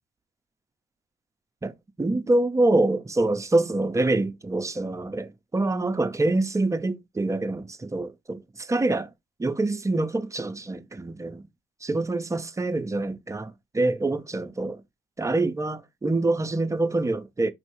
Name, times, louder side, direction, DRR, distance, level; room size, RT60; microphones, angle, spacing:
voice 1, 1.6-9.1 9.4-11.4 11.8-14.8 15.2-17.5, right 2 dB, 15° right, 0.5 m, -25 dB
5.4 x 3.1 x 3.0 m
cardioid pair, 90°, 20 cm